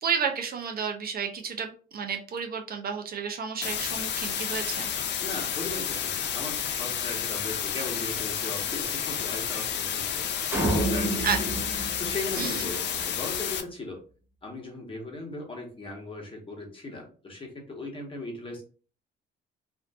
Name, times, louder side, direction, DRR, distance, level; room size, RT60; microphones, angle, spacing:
voice 1, 0.0-4.9 11.2-11.4 12.4-12.6, right 6 dB, 50° right, 4 dB, 0.5 m, -31 dB
sound 1, 3.6-13.6, left 8 dB, 65° left, 0.4 m, -31 dB
voice 2, 5.2-10.2 10.6-11.6 12.0-14.0 14.4-18.6, left 2 dB, 25° left, 0 dB, 1.0 m, -38 dB
sound 2, 10.5-13.0, right 1 dB, 10° right, 0.9 m, -29 dB
2.5 x 2.5 x 2.2 m, 0.39 s
cardioid pair, 90°, 20 cm